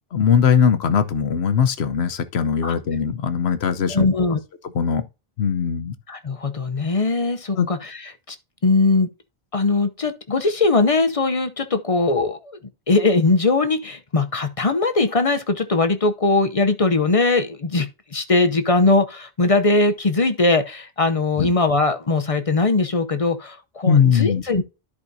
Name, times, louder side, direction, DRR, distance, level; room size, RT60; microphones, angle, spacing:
voice 1, 0.1-4.1 4.7-5.0 5.4-5.9 7.6-7.7 21.4-21.5 23.9-24.4, left 7 dB, 90° left, 1.1 m, -20 dB
voice 2, 3.9-4.4 6.1-8.4 8.6-9.1 9.5-12.6 12.9-24.6, left 3 dB, 40° left, 0.7 m, -20 dB
13.5 x 4.8 x 2.7 m
omnidirectional pair, 1.0 m